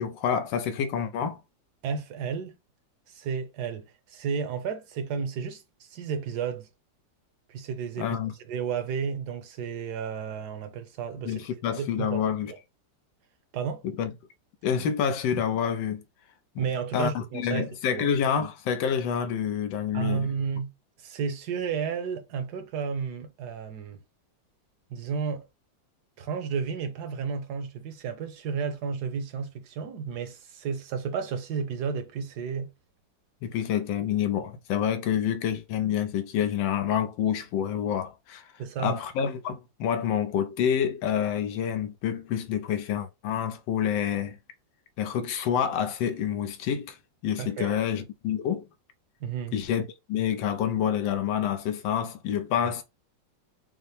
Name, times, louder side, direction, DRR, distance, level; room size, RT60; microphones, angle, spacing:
voice 1, 0.0-1.4 8.0-8.3 11.2-12.5 13.8-14.1 14.6-16.0 16.9-20.3 33.4-38.5 38.8-44.4 45.0-47.0 47.2-48.7 49.5-52.8, left 8 dB, 90° left, 1.4 m, -28 dB
voice 2, 1.8-2.5 3.1-6.7 7.5-8.2 8.5-11.5 11.8-12.2 12.5-12.6 13.5-13.8 16.6-18.0 19.9-20.7 21.0-24.0 24.9-25.4 26.2-32.7 38.6-39.0 47.4-47.8 49.2-49.6, right 6 dB, 65° right, 1.3 m, -32 dB
5.6 x 2.0 x 3.2 m
omnidirectional pair, 2.0 m